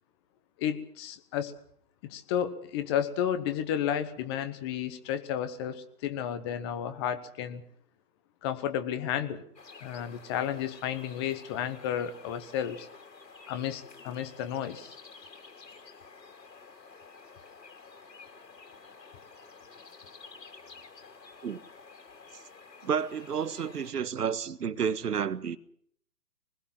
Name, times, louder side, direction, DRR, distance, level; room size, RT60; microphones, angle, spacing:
voice 1, 0.6-1.5 2.0-7.6 8.4-9.4 9.8-12.9 13.5-15.0, left 9 dB, 15° left, 0.9 m, -32 dB
sound 1, 9.6-23.9, left 4 dB, 85° left, 3.2 m, -51 dB
voice 2, 22.8-25.6, right 7 dB, 70° right, 1.6 m, -30 dB
24.0 x 20.5 x 6.0 m
hypercardioid pair, 150°, 48 cm